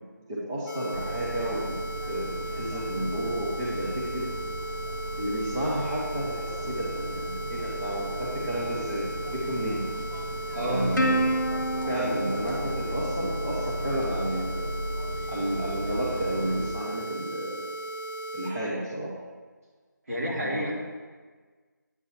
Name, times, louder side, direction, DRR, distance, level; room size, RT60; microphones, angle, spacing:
voice 1, 0.3-1.7 2.1-4.3 5.1-9.8 10.7-11.3 11.9-14.7 15.3-17.6 18.3-19.1 20.4-20.7, right 1 dB, 10° right, -9 dB, 0.5 m, -31 dB
sound 1, 0.7-18.5, right 1 dB, 25° left, 1.3 m, -37 dB
sound 2, 0.9-16.7, equal, 85° right, 1.0 m, -36 dB
voice 2, 10.5-11.1 20.1-20.7, equal, 50° right, -5 dB, 2.4 m, -29 dB
Plucked string instrument, 11.0-13.7, right 1 dB, 65° left, 1.0 m, -29 dB
8.5 x 6.3 x 4.2 m, 1.5 s
figure-of-eight pair, 165°, 11 cm